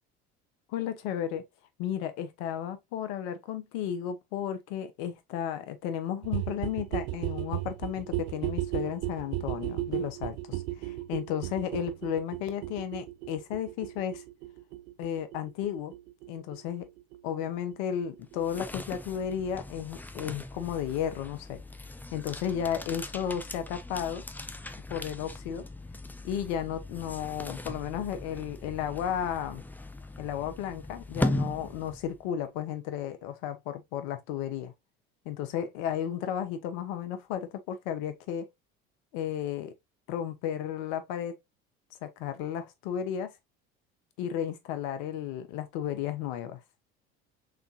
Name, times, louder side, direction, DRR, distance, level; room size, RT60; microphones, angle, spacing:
voice 1, 0.7-1.4 1.8-14.2 15.0-15.9 16.3-16.9 17.2-21.6 22.1-24.2 24.9-25.7 26.2-29.6 30.2-34.7 35.2-38.5 39.1-39.7 40.1-41.4 42.0-43.3 44.2-46.6, left 9 dB, 75° left, 1.0 m, -33 dB
sound 1, 6.2-17.8 18.0-18.1 18.3-18.4 18.6-18.7 18.9-19.0 19.2-19.3 19.5-19.6, right 15 dB, 85° right, 0.5 m, -35 dB
sound 2, 18.2-32.3, left 1 dB, 5° left, 0.5 m, -38 dB
3.6 x 3.5 x 2.7 m
hypercardioid pair, 75°, 32 cm